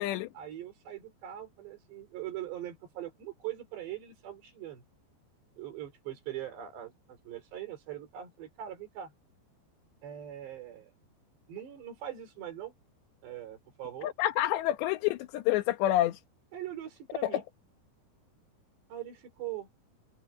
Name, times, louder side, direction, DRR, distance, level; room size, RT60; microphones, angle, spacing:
voice 1, 0.0-4.8 5.6-9.1 10.0-10.9 11.5-12.7 13.2-14.1 16.5-17.4 18.9-19.7, right 12 dB, 80° right, 6.4 m, -41 dB
voice 2, 14.0-16.2 17.2-17.4, left 14 dB, 85° left, 3.4 m, -28 dB
omnidirectional pair, 4.9 m